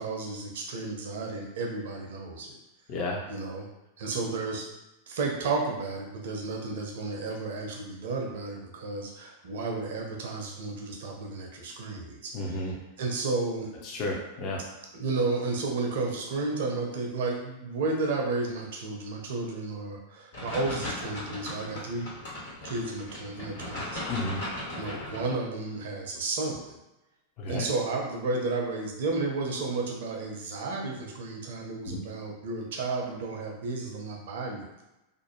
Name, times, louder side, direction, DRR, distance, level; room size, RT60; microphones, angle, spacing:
voice 1, 0.0-2.5 3.3-3.7 4.0-4.6 5.1-13.7 14.9-22.1 22.6-24.0 24.8-26.8 27.5-34.8, right 3 dB, 60° right, 0 dB, 0.6 m, -32 dB
voice 2, 2.9-3.2 12.3-12.7 13.8-14.6 24.1-24.5 27.4-27.6 31.9-32.0, left 2 dB, 40° left, -2 dB, 0.6 m, -32 dB
sound 1, 20.3-25.3, left 1 dB, 60° left, 1.2 m, -37 dB
2.5 x 2.1 x 3.0 m, 0.97 s
figure-of-eight pair, 90°, 0 cm